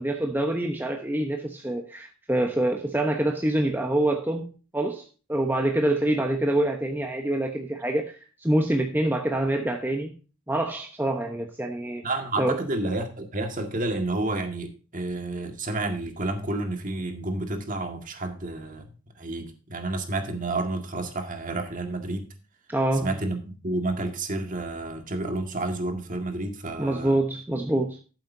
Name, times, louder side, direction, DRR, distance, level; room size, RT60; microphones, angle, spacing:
voice 1, 0.0-10.1 10.5-12.0 12.4-12.6 22.7-23.1 26.8-28.0, right 1 dB, 10° right, 1.0 m, -26 dB
voice 2, 12.0-18.9 19.2-22.3 22.9-27.2, right 2 dB, 35° right, 1.9 m, -30 dB
13.5 x 7.9 x 2.7 m
head